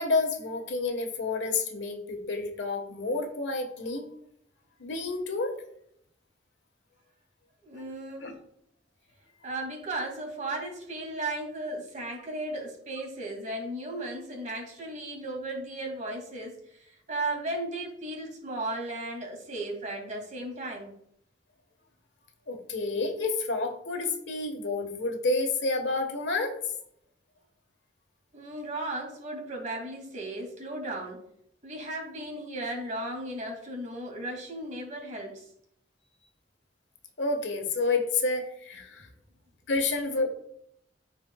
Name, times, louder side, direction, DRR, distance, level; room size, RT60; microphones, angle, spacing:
voice 1, 0.0-4.1 4.8-5.5 8.2-8.3 22.5-26.6 37.2-39.1 39.7-40.3, left 3 dB, 80° left, 5 dB, 1.4 m, -29 dB
voice 2, 7.6-8.3 9.4-20.9 28.3-31.2 31.6-35.5, right 2 dB, 45° right, 1 dB, 2.4 m, -35 dB
14.0 x 5.0 x 2.4 m, 0.71 s
head